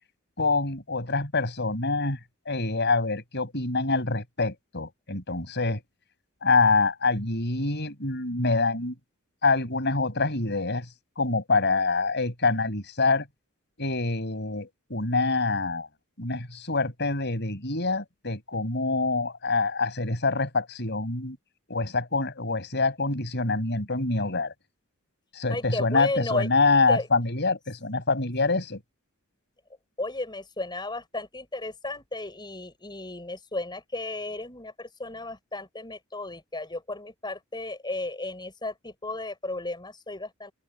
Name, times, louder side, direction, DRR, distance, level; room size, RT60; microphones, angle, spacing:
voice 1, 0.4-2.2 2.4-5.8 6.4-8.9 9.4-10.9 11.2-13.3 13.8-15.9 16.2-21.4 21.7-24.5 25.3-28.8, left 3 dB, 50° left, 6.6 m, -25 dB
voice 2, 25.5-26.5 26.9-27.1 30.0-40.5, left 2 dB, 20° left, 6.2 m, -34 dB
open air
head